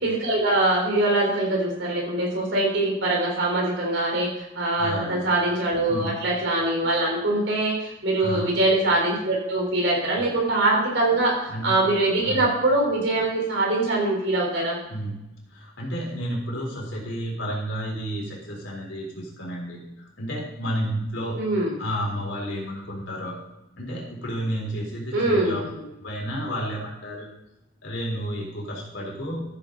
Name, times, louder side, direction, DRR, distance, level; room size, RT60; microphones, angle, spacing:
voice 1, 0.0-11.4 11.6-14.8 21.3-21.7 25.1-25.6, right 2 dB, 75° right, -2 dB, 4.1 m, -23 dB
voice 2, 4.8-5.2 5.9-6.1 8.2-8.6 10.2-10.4 11.5-11.7 12.2-12.5 14.9-15.1 15.5-21.4 21.8-23.4 23.8-25.6 26.0-27.3 27.8-29.4, equal, 90° left, -2 dB, 3.8 m, -31 dB
14.0 x 8.3 x 4.0 m, 0.95 s
head